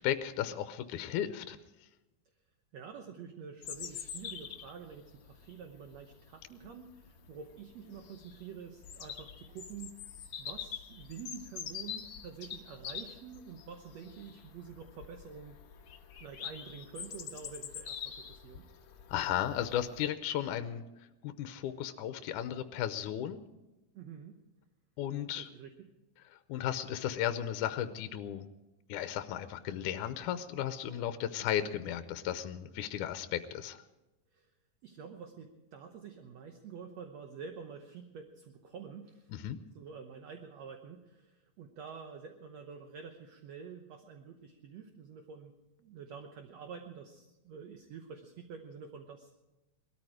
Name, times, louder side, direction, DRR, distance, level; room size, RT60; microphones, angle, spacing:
voice 1, 0.0-1.6 19.1-23.4 25.0-25.5 26.5-28.5 28.9-33.8 39.3-39.6, left 10 dB, 80° left, 10 dB, 2.1 m, -35 dB
voice 2, 2.7-10.0 10.4-18.7 23.9-24.4 25.4-25.9 34.3-34.5 34.8-39.3 39.8-45.5 45.8-49.3, right 6 dB, 65° right, 5 dB, 2.0 m, -48 dB
Bird vocalization bird call bird song, 3.6-20.1, left 8 dB, 60° left, 1.6 m, -46 dB
20.5 x 13.5 x 4.9 m, 1.0 s
omnidirectional pair, 3.6 m